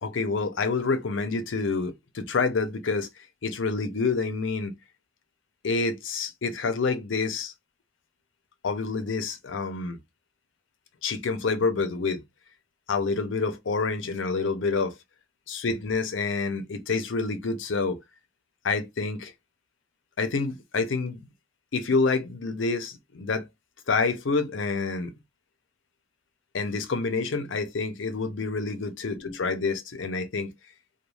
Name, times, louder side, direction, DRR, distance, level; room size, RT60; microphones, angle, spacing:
voice 1, 0.0-3.1 3.4-4.7 5.6-7.5 8.6-10.0 11.0-12.2 12.9-14.9 15.5-18.0 18.6-19.3 20.2-21.2 21.7-23.4 23.9-25.1 26.5-30.5, left 4 dB, 85° left, 0.6 m, -27 dB
2.3 x 2.3 x 3.1 m
head